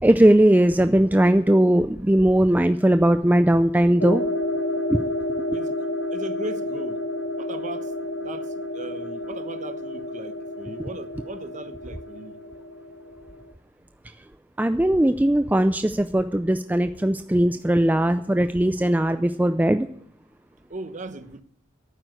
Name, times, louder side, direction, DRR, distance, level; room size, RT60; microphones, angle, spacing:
voice 1, 0.0-4.2 4.9-5.0 14.6-19.9, right 1 dB, 10° right, 0.4 m, -19 dB
sound 1, 4.0-13.5, left 1 dB, 70° left, 1.2 m, -30 dB
voice 2, 6.1-7.0 7.4-7.9 8.2-12.4 20.7-21.4, right 2 dB, 40° right, 0.9 m, -37 dB
12.0 x 9.3 x 6.5 m
head